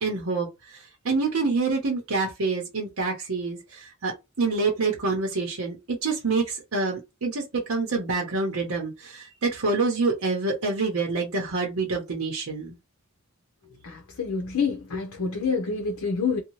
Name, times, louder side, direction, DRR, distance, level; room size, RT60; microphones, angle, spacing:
voice 1, 0.0-12.8, right 3 dB, 80° right, 0.8 m, -27 dB
voice 2, 13.8-16.4, left 5 dB, 85° left, 0.7 m, -27 dB
2.7 x 2.2 x 3.0 m
head